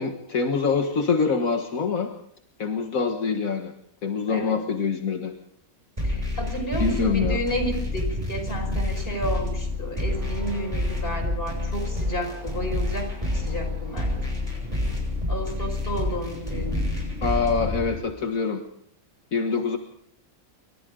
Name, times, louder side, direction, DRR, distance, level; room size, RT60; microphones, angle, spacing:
voice 1, 0.0-2.1 2.6-3.7 4.0-5.3 6.8-7.4 17.2-18.6 19.3-19.8, left 5 dB, 75° left, 4 dB, 1.9 m, -25 dB
voice 2, 6.0-14.1 15.3-16.9, equal, 40° left, 4 dB, 5.8 m, -32 dB
sound 1, 6.0-18.0, left 1 dB, 25° right, 7.4 m, -28 dB
28.5 x 25.0 x 3.8 m, 0.68 s
omnidirectional pair, 1.4 m